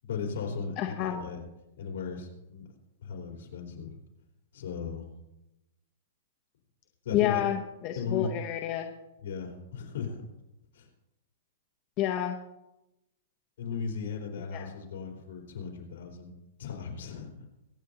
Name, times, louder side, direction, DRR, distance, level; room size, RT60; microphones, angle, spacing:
voice 1, 0.0-1.4 1.8-2.6 3.0-4.0 4.5-5.1 7.0-7.4 7.9-8.3 9.2-10.2 10.7-10.9 13.6-16.3 16.6-17.5, left 5 dB, 70° left, 0 dB, 3.9 m, -36 dB
voice 2, 0.8-1.2 7.1-8.9 12.0-12.4 14.5-14.7, left 12 dB, 25° left, 3 dB, 0.7 m, -29 dB
23.5 x 9.2 x 2.8 m, 0.93 s
supercardioid pair, 175°, 0 cm